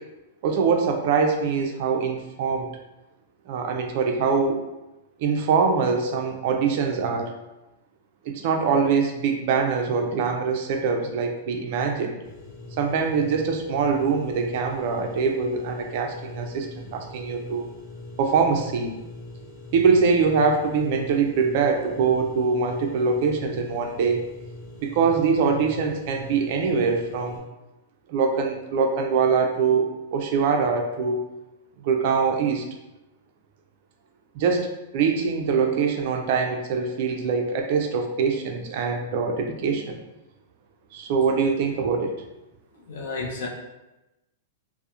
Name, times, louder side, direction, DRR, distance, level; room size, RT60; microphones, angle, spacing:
voice 1, 0.4-2.7 3.5-4.6 5.2-7.3 8.3-12.2 12.8-17.7 18.2-19.0 19.7-24.2 24.8-27.4 28.1-31.2 31.8-32.6 34.3-34.7 34.9-40.0 40.9-42.1, right 5 dB, 40° right, 3 dB, 0.3 m, -23 dB
sound 1, 12.2-27.4, left 2 dB, 10° left, 0.8 m, -42 dB
voice 2, 42.9-43.5, left 3 dB, 60° left, 0 dB, 0.5 m, -31 dB
2.3 x 2.0 x 2.8 m, 0.98 s
supercardioid pair, 170°, 0 cm